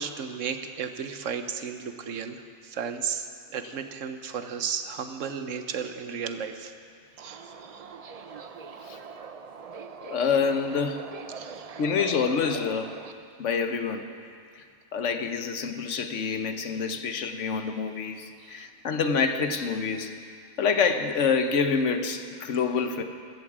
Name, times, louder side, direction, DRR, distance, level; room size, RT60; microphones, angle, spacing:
voice 1, 0.0-2.4 2.6-3.3 3.5-6.7 7.2-7.9 11.4-11.8 18.4-18.7, right 7 dB, 80° right, 8 dB, 1.2 m, -34 dB
Subway metro underground, 7.2-13.1, right 5 dB, 50° right, 0.4 m, -42 dB
voice 2, 10.0-11.0 11.8-12.9 13.4-14.1 14.6-14.7 14.9-20.1 20.6-23.0, left 5 dB, 75° left, 7 dB, 1.2 m, -27 dB
14.5 x 14.0 x 4.9 m, 2.2 s
omnidirectional pair, 1.3 m